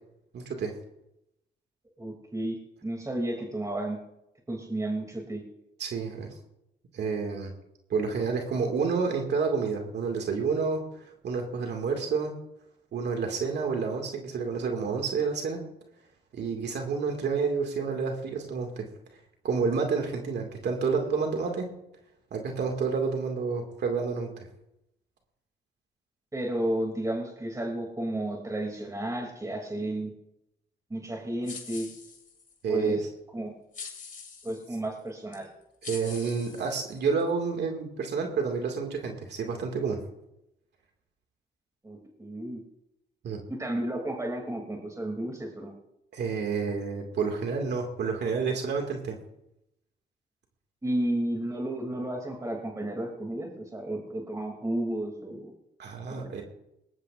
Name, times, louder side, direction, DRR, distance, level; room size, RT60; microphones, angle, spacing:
voice 1, 0.3-0.7 5.8-6.3 6.9-7.5 7.9-12.3 12.9-15.6 16.3-18.9 19.4-21.7 22.3-24.3 32.6-33.1 35.8-40.0 43.2-43.4 46.1-49.2 55.8-56.4, right 5 dB, 65° right, 2 dB, 2.3 m, -29 dB
voice 2, 2.0-4.0 4.5-5.4 26.3-30.1 30.9-31.9 32.7-33.1 33.3-33.5 34.4-35.5 41.8-42.6 43.5-45.7 50.8-55.5 56.1-56.4, right 1 dB, 15° right, 1 dB, 2.9 m, -32 dB
sound 1, 31.4-32.6 33.7-34.7 35.3-35.4 35.8-37.2, left 5 dB, 45° left, 3.2 m, -44 dB
20.0 x 18.0 x 2.6 m, 0.86 s
supercardioid pair, 70°, 19 cm